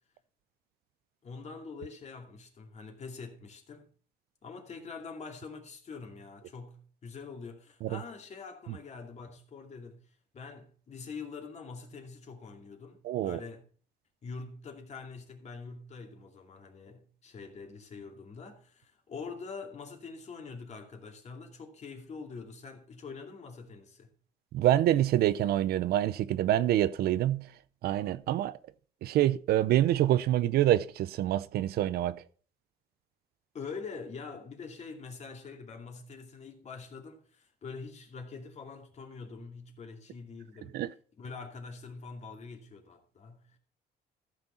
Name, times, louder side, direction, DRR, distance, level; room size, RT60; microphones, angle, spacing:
voice 1, 1.2-3.9 4.4-13.6 14.2-24.1 33.5-40.8 41.2-43.6, left 4 dB, 40° left, 2.5 m, -45 dB
voice 2, 13.0-13.4 24.5-27.5 27.8-28.6 29.0-32.2 40.7-40.9, right 13 dB, 65° right, 0.6 m, -26 dB
14.5 x 6.5 x 4.3 m
cardioid pair, 110°, 17 cm